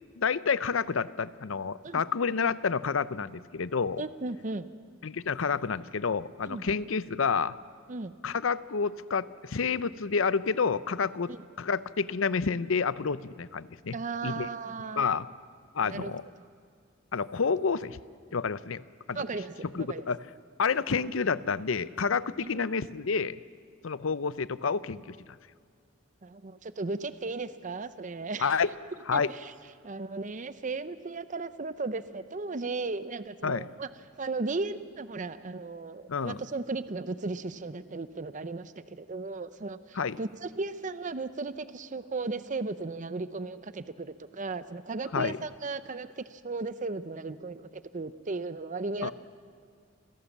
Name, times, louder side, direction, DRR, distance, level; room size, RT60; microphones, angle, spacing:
voice 1, 0.2-4.0 5.0-7.5 8.2-11.3 11.6-14.0 14.2-14.5 15.0-15.3 15.7-16.2 17.1-18.0 18.3-18.8 19.1-19.2 19.7-20.2 20.6-23.4 23.8-25.2 28.4-28.7 29.1-29.3 33.4-33.7 36.1-36.4 39.9-40.2 45.1-45.4 49.0-49.1, left 5 dB, 75° left, 17 dB, 0.6 m, -29 dB
voice 2, 4.0-4.7 6.5-6.6 7.9-8.1 11.3-11.4 13.9-15.2 15.8-16.1 19.1-20.0 22.4-22.7 26.2-28.6 29.1-29.5 29.8-33.9 34.2-49.1, right 3 dB, 40° right, 13 dB, 0.6 m, -36 dB
27.5 x 17.0 x 7.3 m, 2.1 s
head